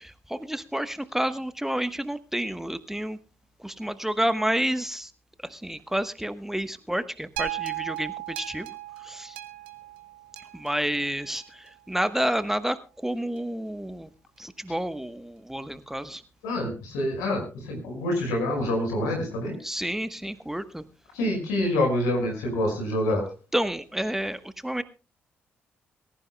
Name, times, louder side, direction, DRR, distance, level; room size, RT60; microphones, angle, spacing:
voice 1, 0.0-3.2 3.6-5.1 5.4-8.7 9.0-9.4 10.5-14.1 14.4-16.2 19.6-20.8 23.5-24.8, right 1 dB, 5° right, 12 dB, 1.1 m, -30 dB
sound 1, 7.4-11.7 12.4-12.5, right 15 dB, 80° right, 1.2 m, -37 dB
voice 2, 16.4-19.6 21.1-23.3, left 1 dB, 70° left, 3 dB, 5.5 m, -26 dB
24.0 x 14.5 x 2.2 m, 0.31 s
figure-of-eight pair, 40°, 6 cm